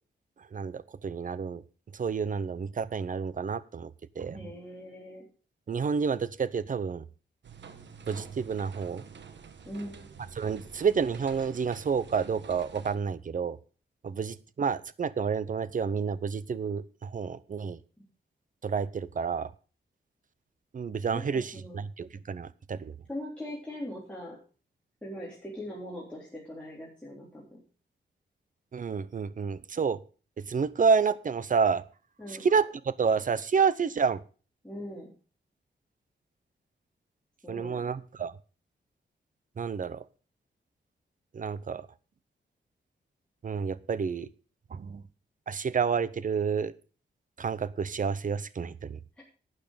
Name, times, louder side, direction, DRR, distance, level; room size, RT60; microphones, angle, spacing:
voice 1, 0.5-1.6 2.0-3.9 4.2-4.5 5.7-7.0 8.1-9.0 10.4-13.6 14.0-17.8 18.6-19.5 20.7-21.5 22.0-22.9 28.7-30.0 30.5-31.8 32.4-34.2 37.5-38.3 39.6-40.0 41.3-41.8 43.4-44.3 44.7-45.0 45.5-46.7 47.4-49.0, right 6 dB, 45° right, 17 dB, 0.8 m, -29 dB
voice 2, 4.3-5.2 9.6-10.1 18.0-18.1 21.1-21.8 23.1-24.4 25.0-27.6 32.2-32.5 34.6-35.1 37.4-37.8, left 1 dB, 5° left, -6 dB, 3.7 m, -41 dB
sound 1, 7.4-13.0, right 6 dB, 75° right, 1.4 m, -47 dB
12.0 x 9.1 x 5.2 m, 0.37 s
wide cardioid pair, 120°, 19 cm